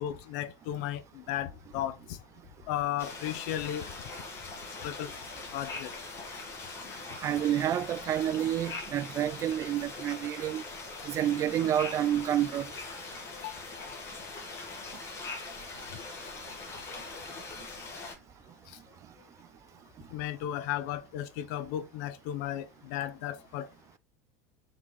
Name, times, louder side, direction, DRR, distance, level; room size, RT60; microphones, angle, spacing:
voice 1, 0.0-2.2 2.7-3.9 4.8-5.1 5.5-5.9 13.3-13.6 18.7-18.8 20.1-23.7, left 11 dB, 70° left, 0.6 m, -35 dB
sound 1, 3.0-18.1, left 3 dB, 30° left, 1.5 m, -42 dB
voice 2, 7.2-10.6 11.0-12.7, right 11 dB, 35° right, 0.3 m, -29 dB
3.7 x 3.6 x 3.1 m
supercardioid pair, 115°, 9 cm